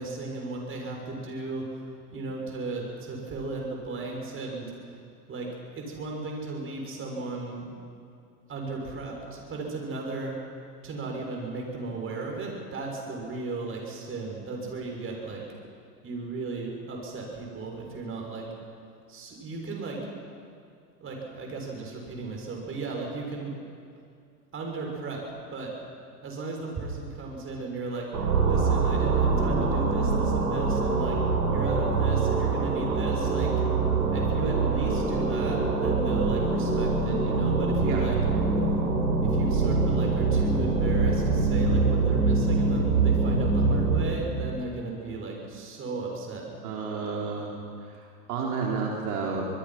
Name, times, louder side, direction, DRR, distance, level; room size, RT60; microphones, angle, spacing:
voice 1, 0.0-1.9 2.1-4.6 5.3-5.5 5.7-7.7 8.5-10.4 10.8-15.4 16.0-18.4 19.1-20.0 21.0-23.5 24.5-25.2 25.5-25.7 26.2-28.1 28.4-31.2 31.5-33.5 34.1-38.2 39.2-46.4, right 3 dB, 25° right, 0 dB, 6.7 m, -35 dB
sound 1, 28.1-44.3, right 4 dB, 85° right, 4.2 m, -24 dB
voice 2, 46.6-49.5, right 5 dB, 65° right, -1 dB, 4.0 m, -31 dB
25.0 x 22.0 x 6.0 m, 2.4 s
hypercardioid pair, 100°, 47 cm